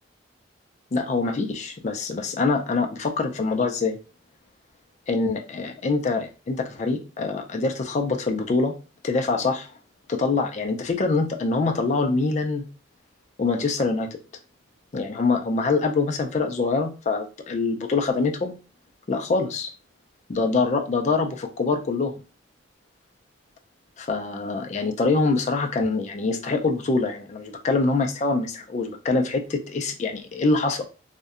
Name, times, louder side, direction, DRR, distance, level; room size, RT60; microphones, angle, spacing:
voice 1, 0.9-4.0 5.1-8.8 9.0-9.7 10.1-12.6 13.4-14.2 14.9-18.5 19.1-19.7 20.3-22.2 24.0-30.9, left 3 dB, 35° left, 5 dB, 0.3 m, -24 dB
2.6 x 2.1 x 2.4 m, 0.33 s
head